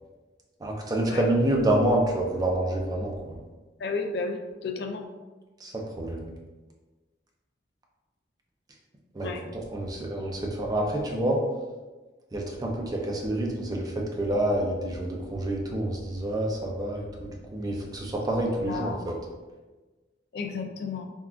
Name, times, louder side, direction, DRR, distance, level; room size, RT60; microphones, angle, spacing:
voice 1, 0.6-3.4 5.6-6.3 9.1-11.4 12.3-19.2, right 1 dB, 20° right, 0 dB, 0.4 m, -28 dB
voice 2, 3.8-5.1 9.2-9.4 18.6-19.0 20.3-21.1, left 4 dB, 60° left, 4 dB, 0.3 m, -32 dB
3.6 x 2.2 x 2.3 m, 1.2 s
head